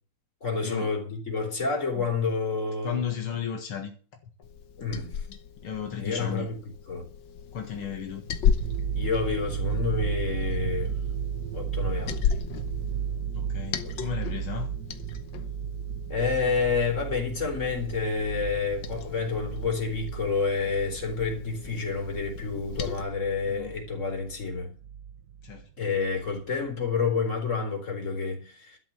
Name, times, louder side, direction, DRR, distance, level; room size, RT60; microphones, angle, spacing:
voice 1, 0.4-3.0 4.8-5.3 6.0-6.6 6.9-7.0 8.9-11.0 11.5-12.4 13.8-14.1 16.1-24.7 25.8-28.8, left 4 dB, 35° left, 4.3 m, -29 dB
voice 2, 2.8-3.9 5.6-6.5 7.5-8.2 13.3-14.7 23.5-23.7 25.4-25.6, left 8 dB, 75° left, 2.6 m, -34 dB
Liquid, 4.4-23.0, left 7 dB, 60° left, 1.7 m, -35 dB
sound 1, 8.6-25.7 26.0-26.3, right 8 dB, 65° right, 1.0 m, -34 dB
12.5 x 8.0 x 7.5 m
omnidirectional pair, 2.4 m